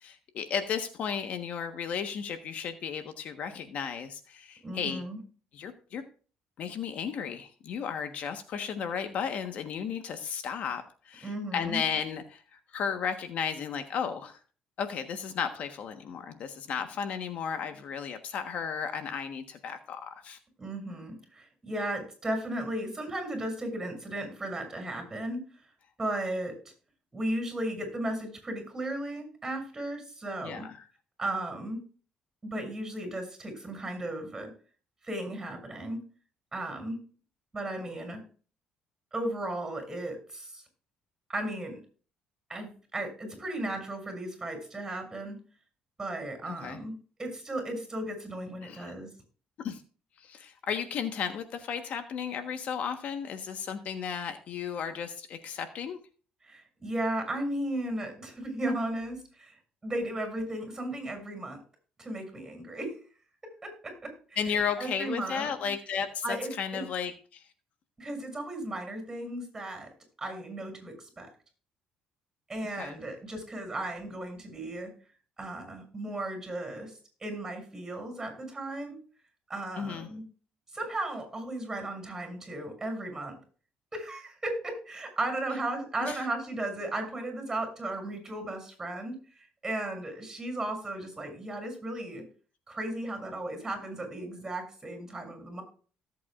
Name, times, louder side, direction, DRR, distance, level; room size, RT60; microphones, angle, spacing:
voice 1, 0.0-5.0 5.5-6.0 6.6-12.4 12.7-14.4 14.8-20.4 30.4-30.7 46.5-46.8 48.6-48.9 49.6-49.8 50.2-56.0 64.4-67.4 72.8-73.0 79.8-80.1 86.0-86.2, left 7 dB, 60° left, 7 dB, 1.3 m, -34 dB
voice 2, 4.6-5.2 11.2-11.8 20.6-25.4 26.0-26.5 27.1-30.7 31.2-31.8 32.4-34.5 35.0-36.0 36.5-37.0 37.5-38.2 39.1-40.6 41.3-41.8 42.5-45.4 46.0-46.9 47.2-49.1 56.4-59.6 59.8-61.6 62.0-62.9 63.6-65.5 66.2-66.8 68.0-69.9 70.2-71.3 72.5-74.9 75.4-76.9 77.2-79.0 79.5-80.2 80.7-83.3 83.9-89.2 89.6-92.2 92.7-95.6, right 1 dB, 20° right, 4 dB, 6.7 m, -35 dB
18.0 x 8.3 x 2.5 m, 0.39 s
cardioid pair, 100°, 3 cm